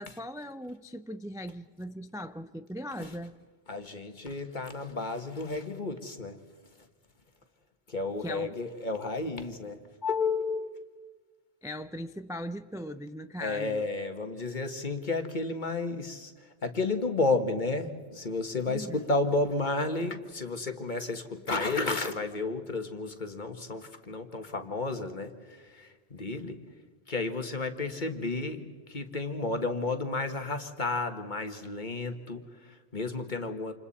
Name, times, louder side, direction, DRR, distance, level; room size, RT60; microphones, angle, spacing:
voice 1, 0.0-3.3 8.2-8.5 11.6-13.9 18.7-19.0, equal, 5° right, 0.4 m, -39 dB
voice 2, 3.7-6.4 6.8-6.9 7.9-10.9 13.4-26.6 27.1-33.7, left 3 dB, 45° left, 1.8 m, -32 dB
29.0 x 28.0 x 4.3 m
omnidirectional pair, 1.1 m